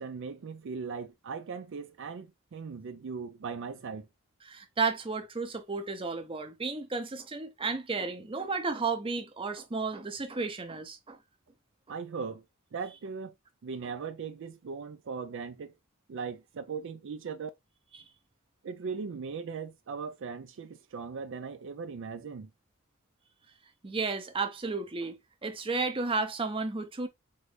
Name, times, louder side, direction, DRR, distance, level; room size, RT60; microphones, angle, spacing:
voice 1, 0.0-4.1 11.9-12.4 12.7-13.3 13.6-15.7 16.1-17.5 18.6-22.5, right 5 dB, 60° right, 0.4 m, -39 dB
voice 2, 4.4-11.2 17.9-18.0 23.8-25.2 25.4-27.1, right 4 dB, 25° right, 0.7 m, -33 dB
4.5 x 2.6 x 3.3 m
head